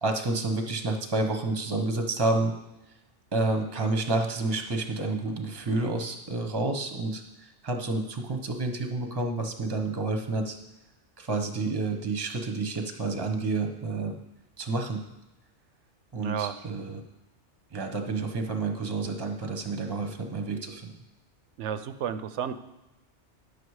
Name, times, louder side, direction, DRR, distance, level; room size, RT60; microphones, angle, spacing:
voice 1, 0.0-2.6 3.3-10.6 11.2-14.2 14.6-15.0 16.1-17.0 17.7-20.9, right 3 dB, 25° right, 4 dB, 0.7 m, -29 dB
voice 2, 16.2-16.6 21.6-22.5, right 8 dB, 80° right, 11 dB, 0.9 m, -32 dB
9.9 x 6.7 x 4.8 m, 0.97 s
omnidirectional pair, 1.2 m